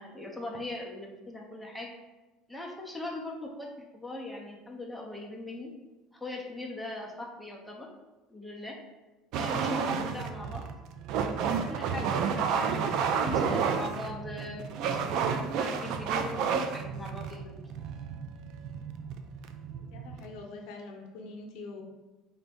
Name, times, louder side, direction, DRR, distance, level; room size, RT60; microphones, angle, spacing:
voice 1, 0.0-1.9 2.5-5.7 6.1-7.9 8.3-8.8 9.3-10.6 11.6-12.8 13.2-17.6, left 2 dB, ahead, -1 dB, 0.6 m, -40 dB
sound 1, 9.3-20.4, right 6 dB, 60° right, 0.3 m, -31 dB
voice 2, 19.8-21.8, left 3 dB, 70° left, 2 dB, 0.7 m, -44 dB
4.1 x 2.6 x 3.5 m, 1.1 s
cardioid pair, 135°, 0 cm